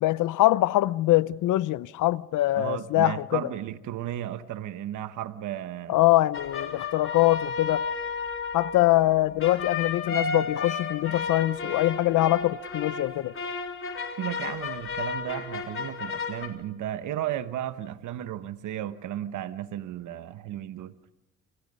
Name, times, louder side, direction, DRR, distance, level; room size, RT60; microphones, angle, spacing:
voice 1, 0.0-3.4 5.9-7.8 8.5-13.3, left 17 dB, 85° left, 0.7 m, -23 dB
voice 2, 2.6-6.0 14.2-21.0, right 12 dB, 80° right, 1.1 m, -34 dB
sound 1, 6.3-16.5, left 4 dB, 45° left, 3.6 m, -33 dB
28.5 x 26.0 x 5.4 m
cardioid pair, 90°, 30 cm